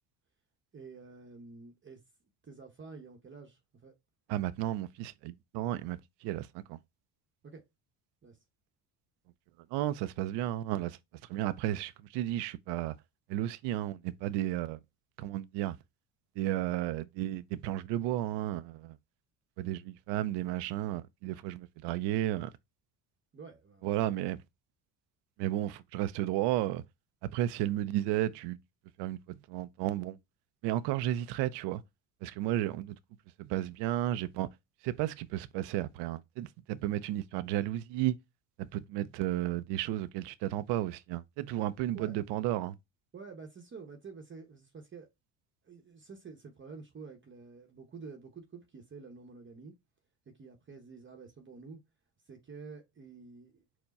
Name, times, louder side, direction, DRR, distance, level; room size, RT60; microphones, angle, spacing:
voice 1, 0.7-2.0 2.4-3.9 7.4-7.6 8.2-8.4 23.3-24.2 41.9-42.2 43.1-45.1 45.6-49.7 50.3-51.8 52.2-53.6, right 4 dB, 25° right, 0.8 m, -49 dB
voice 2, 4.3-6.8 9.7-11.0 11.3-12.9 13.3-14.8 15.2-15.8 16.4-19.0 19.6-22.5 23.8-24.4 25.4-26.8 27.3-28.6 29.0-30.2 30.6-31.8 32.2-33.0 33.4-34.5 34.8-38.2 38.6-42.7, right 13 dB, 70° right, 0.5 m, -33 dB
4.5 x 2.1 x 4.0 m
supercardioid pair, 90°, 43 cm